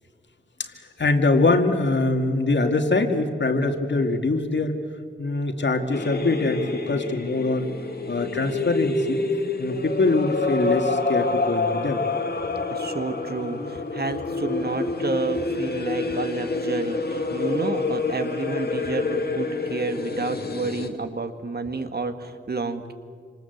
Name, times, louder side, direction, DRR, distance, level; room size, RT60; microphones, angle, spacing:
voice 1, 0.6-4.8 5.2-7.7 8.1-9.2 9.6-12.0, left 3 dB, 75° left, 5 dB, 2.2 m, -23 dB
sound 1, 5.9-20.9, left 3 dB, 60° left, 2.5 m, -27 dB
voice 2, 12.7-22.9, right 3 dB, 60° right, 8 dB, 1.9 m, -30 dB
27.5 x 26.5 x 8.0 m, 2.1 s
wide cardioid pair, 100°, 19 cm